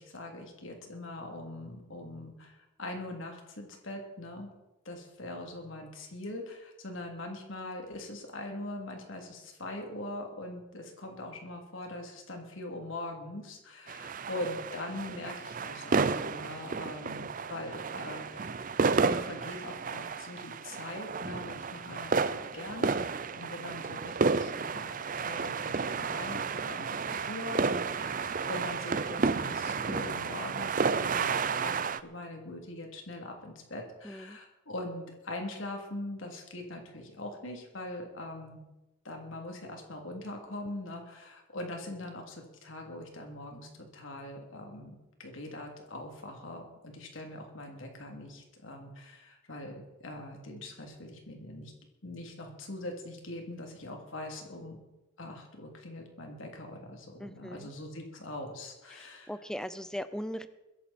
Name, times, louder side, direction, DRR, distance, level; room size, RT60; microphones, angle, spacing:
voice 1, 0.0-4.5 4.8-23.1 23.3-25.0 25.2-38.6 39.0-51.7 52.0-54.8 55.2-59.3, left 1 dB, 80° left, 2 dB, 3.0 m, -42 dB
sound 1, 13.9-32.0, right 4 dB, 40° right, 0.5 m, -32 dB
voice 2, 34.0-34.4 57.2-57.7 58.9-60.5, equal, 5° left, 12 dB, 0.6 m, -39 dB
22.5 x 10.5 x 4.4 m, 1.0 s
head